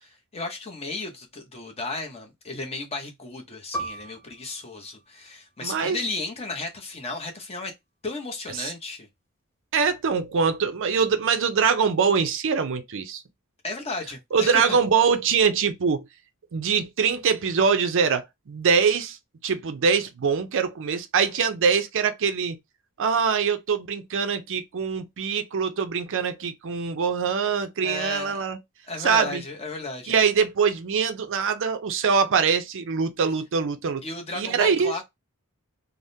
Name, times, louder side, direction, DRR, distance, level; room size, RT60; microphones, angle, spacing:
voice 1, 0.0-7.7 8.0-9.1 13.6-14.6 27.8-28.5 28.9-30.1 34.0-35.0, left 2 dB, 30° left, 0.8 m, -34 dB
Piano, 3.7-8.8 9.1-9.3 10.0-10.4, right 1 dB, 10° left, 0.4 m, -41 dB
voice 2, 5.6-6.0 8.6-8.7 9.7-13.2 14.3-16.0 16.5-19.2 19.4-22.6 23.0-28.6 29.0-29.4 30.1-34.0 34.3-34.9, right 6 dB, 60° right, 0.5 m, -23 dB
3.5 x 2.1 x 2.6 m
head